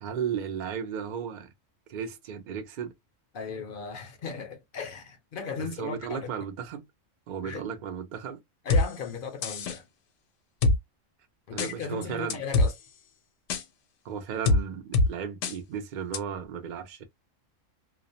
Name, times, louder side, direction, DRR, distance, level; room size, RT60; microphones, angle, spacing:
voice 1, 0.0-1.5 1.9-2.9 5.6-6.9 7.3-8.4 11.5-12.4 14.0-17.1, right 7 dB, 70° right, 0.4 m, -35 dB
voice 2, 3.3-6.3 7.4-7.6 8.6-9.8 11.5-12.7, left 5 dB, 55° left, 0.6 m, -36 dB
sound 1, 8.7-8.8 9.4-9.8 10.6-10.8 11.6-11.7 12.3-12.7 13.5-13.6 14.4-14.6 14.9-15.1 15.4-15.5 16.1-16.2, left 2 dB, 80° left, 0.9 m, -22 dB
2.4 x 2.0 x 2.6 m
omnidirectional pair, 1.3 m